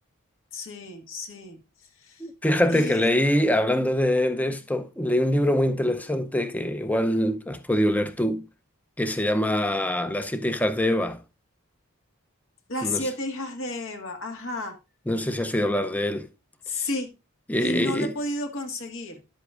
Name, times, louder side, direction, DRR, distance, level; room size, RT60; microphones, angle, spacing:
voice 1, 0.5-1.6 2.0-2.2 2.7-3.0 4.5-4.6 12.7-14.7 16.7-17.1 17.6-19.2, left 2 dB, 65° left, 1.7 m, -32 dB
voice 2, 2.2-8.4 9.0-11.2 12.8-13.1 15.1-16.3 16.8-16.9 17.5-18.1, left 1 dB, 5° left, 0.5 m, -24 dB
11.5 x 8.1 x 2.5 m
head